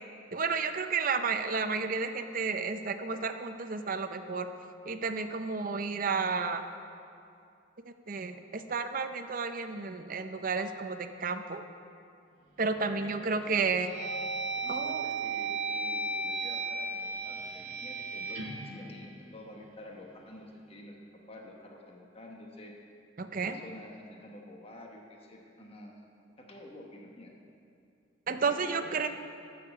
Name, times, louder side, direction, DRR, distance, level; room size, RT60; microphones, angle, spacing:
voice 1, 0.3-4.5 4.9-6.6 8.1-11.6 12.6-13.9 14.7-15.0 23.2-23.6 28.3-29.1, right 4 dB, 45° right, 8 dB, 0.6 m, -32 dB
sound 1, 12.6-13.1 13.6-19.8, right 3 dB, 90° right, 1.4 m, -36 dB
voice 2, 12.7-13.4 14.6-22.7 23.4-26.0 26.4-27.3 28.3-29.1, left 1 dB, 30° left, 0 dB, 1.2 m, -49 dB
12.0 x 6.6 x 7.0 m, 2.5 s
head